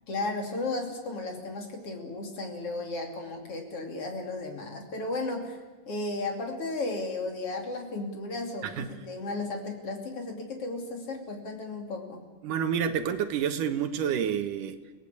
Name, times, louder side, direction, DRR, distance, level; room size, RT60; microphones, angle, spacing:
voice 1, 0.1-12.2, left 2 dB, 45° left, 3 dB, 3.8 m, -34 dB
voice 2, 12.4-14.8, right 8 dB, 80° right, 9 dB, 2.9 m, -29 dB
29.5 x 18.5 x 8.6 m, 1.3 s
omnidirectional pair, 3.7 m